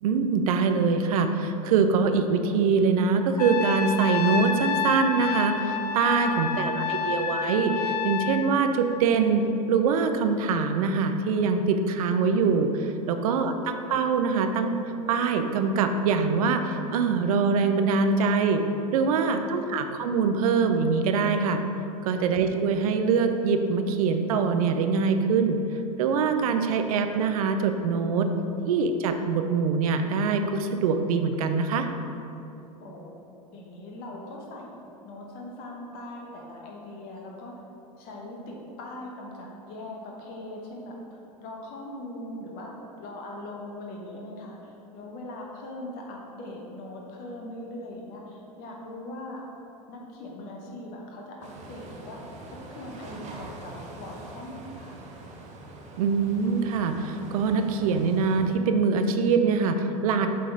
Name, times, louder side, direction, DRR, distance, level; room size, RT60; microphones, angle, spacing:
voice 1, 0.0-14.7 15.1-18.6 18.9-21.6 22.1-25.6 26.0-28.3 28.7-31.9 56.0-60.3, right 5 dB, 65° right, 7 dB, 0.5 m, -24 dB
Trumpet, 3.4-8.5, left 6 dB, 85° left, 0.4 m, -29 dB
voice 2, 6.3-7.2 13.2-13.6 19.1-19.8 22.1-22.4 32.8-33.2 33.5-37.5 38.0-49.4 49.9-55.0, left 1 dB, 50° left, -1 dB, 1.1 m, -41 dB
sound 1, 51.4-58.6, right 2 dB, 35° right, 0.9 m, -44 dB
7.5 x 3.9 x 3.9 m, 2.8 s
figure-of-eight pair, 80°, 20 cm